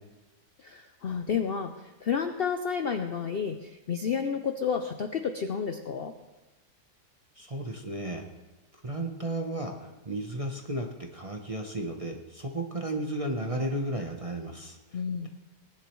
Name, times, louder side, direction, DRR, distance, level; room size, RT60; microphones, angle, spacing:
voice 1, 0.6-6.1 14.9-15.3, left 6 dB, 80° left, 7 dB, 0.5 m, -31 dB
voice 2, 7.4-8.2 8.8-15.3, right 1 dB, 30° right, 1 dB, 0.6 m, -34 dB
19.0 x 10.5 x 3.1 m, 1.1 s
omnidirectional pair, 1.8 m